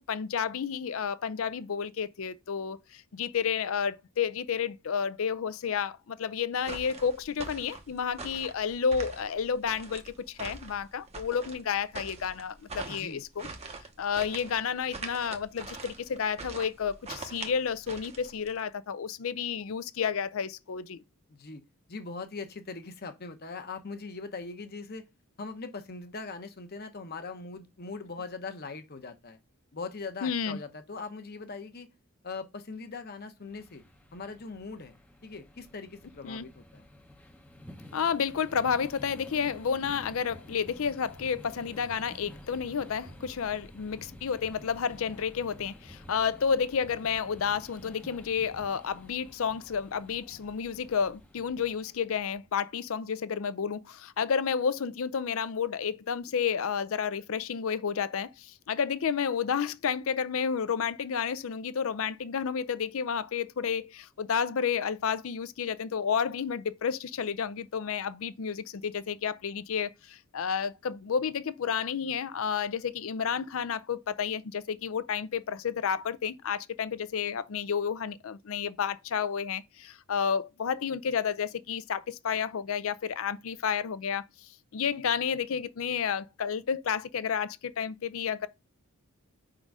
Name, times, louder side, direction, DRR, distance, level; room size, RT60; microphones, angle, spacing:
voice 1, 0.0-13.5 14.0-21.0 30.2-30.6 36.2-36.5 37.9-88.5, left 7 dB, 65° left, 0.5 m, -31 dB
sound 1, 6.6-18.6, right 3 dB, 30° right, 0.8 m, -43 dB
voice 2, 12.9-13.2 21.3-21.6 21.9-25.1 25.4-29.4 29.7-31.9 32.2-33.8 34.1-35.0 35.2-36.9, left 4 dB, 45° left, 0.8 m, -41 dB
sound 2, 33.4-52.5, equal, 5° left, 0.7 m, -51 dB
5.3 x 3.8 x 4.7 m
head